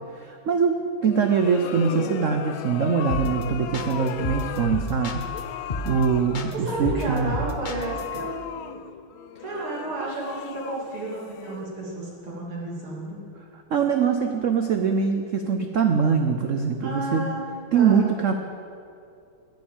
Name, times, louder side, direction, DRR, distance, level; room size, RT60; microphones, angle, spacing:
voice 1, 0.2-5.2 5.8-7.4 9.5-9.6 10.0-10.1 13.7-17.3 17.7-18.3, right 6 dB, 65° right, 5 dB, 0.7 m, -23 dB
sound 1, 1.0-12.0, left 11 dB, 75° left, 1.3 m, -37 dB
voice 2, 1.6-2.2 6.6-8.9 9.4-13.2 16.8-17.4 17.7-18.1, right 2 dB, 90° right, -4 dB, 3.9 m, -32 dB
sound 2, 3.1-3.4 3.7-5.4 5.7-6.0 6.3-8.2, left 2 dB, 55° left, 0.5 m, -31 dB
11.5 x 9.8 x 8.8 m, 2.5 s
omnidirectional pair, 2.3 m